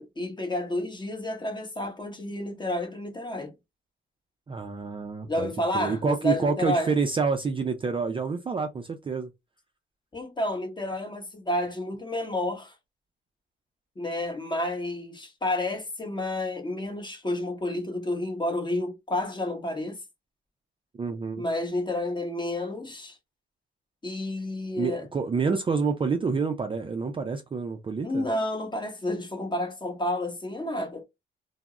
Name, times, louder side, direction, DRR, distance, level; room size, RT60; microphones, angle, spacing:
voice 1, 0.0-3.5 5.3-6.9 10.1-12.7 14.0-20.0 21.4-23.2 24.0-25.1 28.0-31.0, left 1 dB, 20° left, 0.9 m, -30 dB
voice 2, 4.5-9.3 21.0-21.5 24.8-28.3, right 5 dB, 25° right, 0.4 m, -28 dB
2.2 x 2.0 x 3.6 m
cardioid pair, 110°, 21 cm